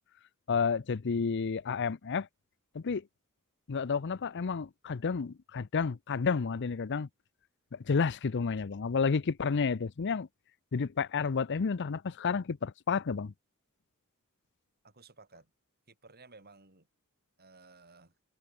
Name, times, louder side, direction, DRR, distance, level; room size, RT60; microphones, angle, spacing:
voice 1, 0.5-2.3 2.7-3.0 3.7-7.1 7.7-10.3 10.7-13.3, left 5 dB, 55° left, 0.5 m, -31 dB
voice 2, 14.8-15.5 15.9-16.9 17.4-18.1, right 3 dB, 45° right, 7.7 m, -56 dB
head